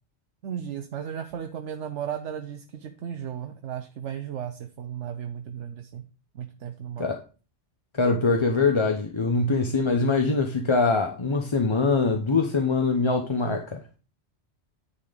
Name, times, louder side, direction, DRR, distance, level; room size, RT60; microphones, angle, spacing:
voice 1, 0.4-6.0 6.3-7.0, right 9 dB, 85° right, 1.1 m, -35 dB
voice 2, 7.9-13.8, left 3 dB, 30° left, 0.7 m, -23 dB
9.7 x 4.2 x 5.1 m
omnidirectional pair, 1.2 m